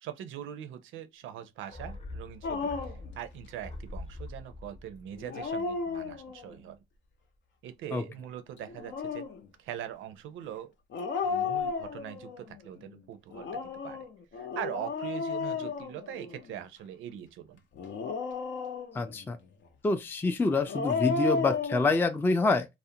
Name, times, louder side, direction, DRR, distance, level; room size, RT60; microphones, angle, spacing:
voice 1, 0.0-6.8 7.6-9.2 9.6-10.7 11.2-14.0 14.3-17.6, right 10 dB, 85° right, 0.5 m, -42 dB
sound 1, 1.7-6.3 6.6-6.7, left 2 dB, 30° left, 0.7 m, -44 dB
Dog, 2.4-3.1 5.1-6.5 8.6-9.4 10.9-12.4 13.3-16.5 17.8-19.2 20.5-21.8, left 5 dB, 65° left, 0.6 m, -33 dB
voice 2, 18.9-19.4 19.8-22.7, left 3 dB, 10° left, 0.3 m, -26 dB
2.4 x 2.1 x 2.6 m
cardioid pair, 90°, 20 cm